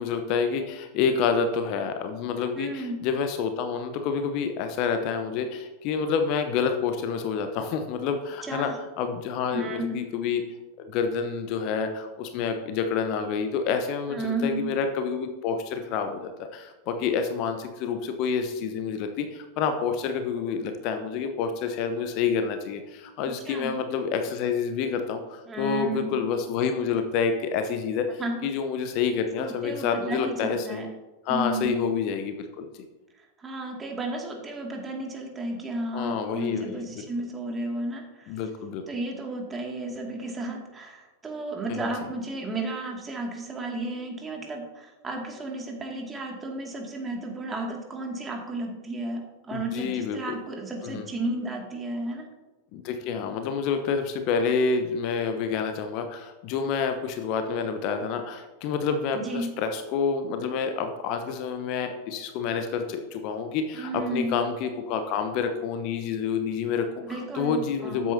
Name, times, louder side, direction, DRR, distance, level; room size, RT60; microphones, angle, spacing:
voice 1, 0.0-8.7 9.0-10.4 10.8-30.8 31.2-32.8 35.9-36.9 38.3-38.8 41.7-41.8 49.5-50.3 50.8-51.0 52.7-68.1, left 6 dB, 40° left, 7 dB, 0.9 m, -28 dB
voice 2, 2.5-3.0 8.4-8.8 9.5-10.0 14.1-14.7 23.5-23.8 25.5-26.2 28.2-28.5 29.4-30.9 31.3-31.9 33.2-38.3 38.9-52.2 59.1-59.5 63.7-64.4 67.0-68.1, right 2 dB, 15° right, 1 dB, 2.3 m, -33 dB
13.5 x 9.4 x 2.8 m, 1.1 s
figure-of-eight pair, 90°, 0 cm